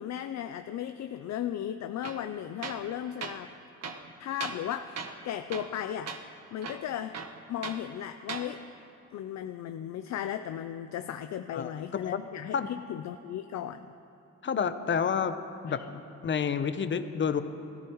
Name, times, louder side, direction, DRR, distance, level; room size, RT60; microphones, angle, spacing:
voice 1, 0.0-3.5 4.2-6.2 6.5-7.2 7.5-8.6 9.1-13.9 15.7-15.8, left 10 dB, 65° left, 9 dB, 0.5 m, -36 dB
Tools, 2.0-2.2 2.6-2.9 3.2-3.4 3.8-4.7 5.0-5.2 5.5-5.8 6.1-6.2 6.6-7.8 8.2-8.5, right 5 dB, 55° right, 1.1 m, -39 dB
voice 2, 11.5-12.2 12.5-12.7 14.4-15.4 15.6-17.4, left 7 dB, 40° left, 10 dB, 0.8 m, -29 dB
19.5 x 14.5 x 3.1 m, 3.0 s
cardioid pair, 90°, 30 cm